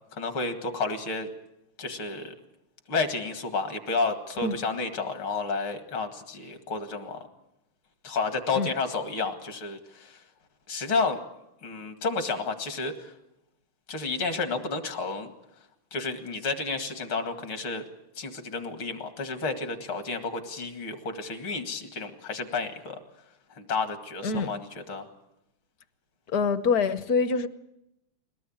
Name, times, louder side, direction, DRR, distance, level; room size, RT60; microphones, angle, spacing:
voice 1, 0.1-1.3 1.8-2.3 2.9-7.3 8.0-10.2 10.7-11.2 11.6-13.1 13.9-15.3 15.9-17.8 18.2-23.0 23.5-25.1, left 4 dB, 70° left, 2.9 m, -31 dB
voice 2, 26.3-27.5, left 5 dB, 55° left, 1.2 m, -25 dB
22.0 x 18.0 x 8.8 m
omnidirectional pair, 2.4 m